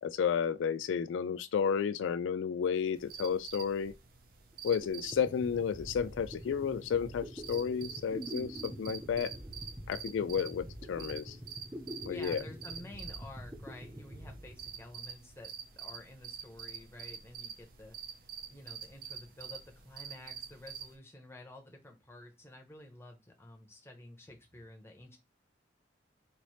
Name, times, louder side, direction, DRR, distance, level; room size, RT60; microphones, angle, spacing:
voice 1, 0.0-3.9 4.6-9.3 9.9-11.4 12.0-12.4, left 7 dB, 85° left, 0.3 m, -32 dB
sound 1, 2.9-20.9, right 7 dB, 50° right, 0.7 m, -47 dB
sound 2, 4.5-4.6 4.8-15.3, equal, 15° right, 0.7 m, -46 dB
voice 2, 12.0-25.2, left 1 dB, 15° left, 0.9 m, -51 dB
4.3 x 2.8 x 3.1 m
head